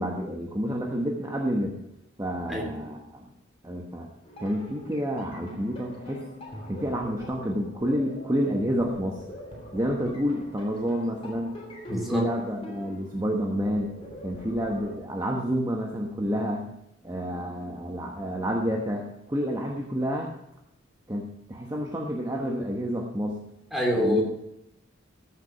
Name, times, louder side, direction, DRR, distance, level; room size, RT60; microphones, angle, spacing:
voice 1, 0.0-1.7 2.2-3.3 3.6-4.1 4.4-6.2 6.7-9.2 9.7-11.6 11.9-13.9 14.2-16.6 17.0-20.3 21.1-23.4 24.0-24.2, equal, 20° right, 0 dB, 1.1 m, -29 dB
sound 1, 4.2-14.9, equal, 30° left, 3.1 m, -44 dB
voice 2, 11.9-12.2 23.7-24.2, equal, ahead, -1 dB, 2.7 m, -25 dB
14.5 x 6.9 x 5.7 m, 0.85 s
head